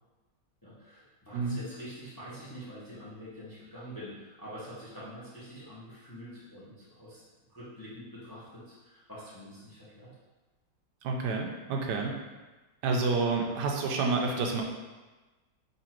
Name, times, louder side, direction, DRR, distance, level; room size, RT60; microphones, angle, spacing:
voice 1, 0.6-7.2 7.5-10.1, equal, 15° left, -9 dB, 0.9 m, -46 dB
voice 2, 11.0-12.2 12.8-14.6, right 4 dB, 80° right, 1 dB, 1.2 m, -29 dB
4.0 x 3.0 x 4.4 m, 1.2 s
omnidirectional pair, 1.9 m